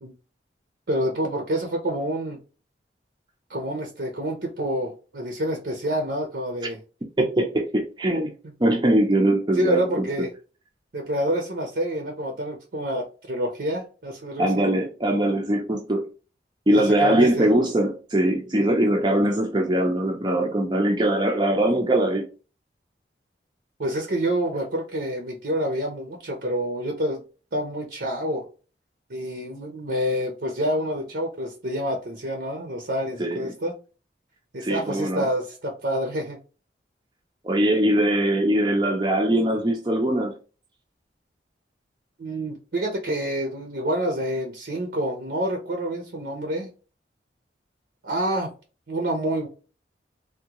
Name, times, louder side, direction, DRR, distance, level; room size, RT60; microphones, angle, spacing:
voice 1, 0.9-2.4 3.5-6.8 9.5-10.3 10.9-14.7 16.7-17.5 23.8-27.2 27.5-28.5 29.1-33.7 34.5-36.4 42.2-46.7 48.0-48.5 48.9-49.5, equal, 65° right, 0.7 m, -27 dB
voice 2, 7.2-8.3 8.6-10.1 14.4-16.1 16.7-22.2 33.2-33.6 34.6-35.3 37.4-40.4, right 1 dB, 25° right, 0.5 m, -22 dB
3.5 x 2.2 x 2.9 m
head